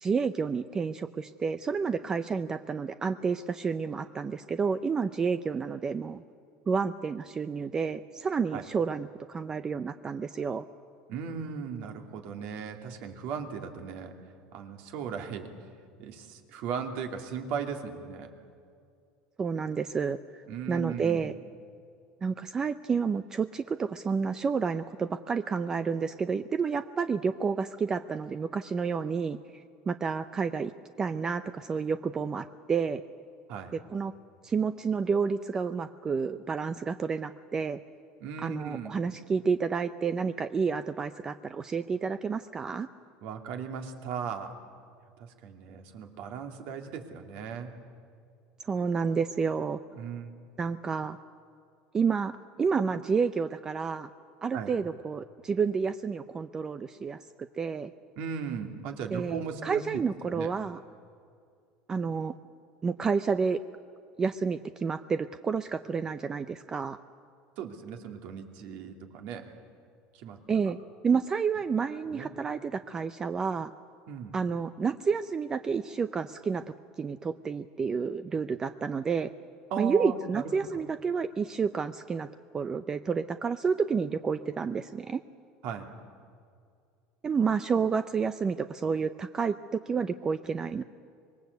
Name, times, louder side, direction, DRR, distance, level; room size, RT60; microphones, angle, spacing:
voice 1, 0.0-6.2 6.7-10.6 19.4-21.3 22.2-29.4 29.9-30.7 31.0-33.0 33.7-34.1 34.4-37.8 38.4-42.9 48.6-49.8 50.6-51.2 51.9-54.1 54.4-57.2 57.6-57.9 59.1-60.8 61.9-62.3 62.8-63.6 64.2-67.0 70.5-70.8 71.0-73.7 74.3-76.6 77.0-79.3 79.8-82.3 82.5-85.2 87.2-90.8, right 5 dB, 20° right, 11 dB, 0.6 m, -30 dB
voice 2, 11.1-14.1 14.5-15.5 16.0-18.3 20.5-21.3 33.5-33.7 38.2-39.0 43.2-44.5 45.2-47.7 49.9-50.3 54.5-54.7 58.2-60.0 60.3-60.5 67.6-69.5 70.1-70.4 72.1-72.3 74.1-74.3 79.7-80.8 85.6-85.9, right 7 dB, 60° right, 4 dB, 2.7 m, -37 dB
25.5 x 22.0 x 8.2 m, 2.3 s
cardioid pair, 145°, 3 cm